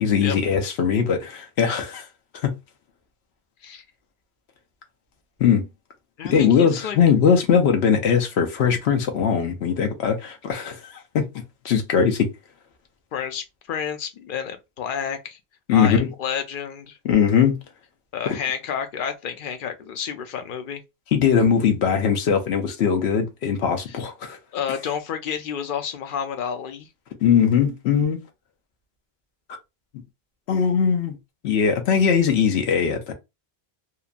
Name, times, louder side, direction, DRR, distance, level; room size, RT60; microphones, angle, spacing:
voice 1, 0.0-2.0 2.4-2.5 5.4-5.6 6.3-10.8 11.1-11.2 11.6-12.3 15.7-16.1 17.0-17.6 18.3-18.4 21.1-24.4 27.2-28.2 30.5-31.2 31.4-33.1, left 7 dB, 80° left, 0.9 m, -20 dB
voice 2, 6.2-7.0 13.1-15.4 15.7-17.0 18.1-20.8 23.9-24.0 24.5-26.9, left 7 dB, 60° left, 0.6 m, -30 dB
2.9 x 2.2 x 2.4 m
omnidirectional pair, 1.1 m